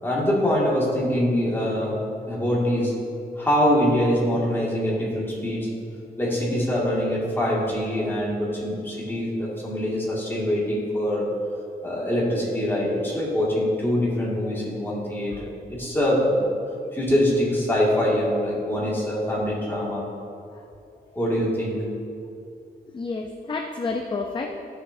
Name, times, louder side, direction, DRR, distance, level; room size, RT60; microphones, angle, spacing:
voice 1, 0.0-3.0 3.4-5.8 6.2-11.3 11.8-16.4 16.9-20.1 21.2-21.8, equal, 15° left, -6 dB, 1.9 m, -24 dB
voice 2, 22.9-24.5, left 3 dB, 30° left, 2 dB, 0.5 m, -30 dB
13.5 x 6.8 x 2.6 m, 2.5 s
wide cardioid pair, 145°, 17 cm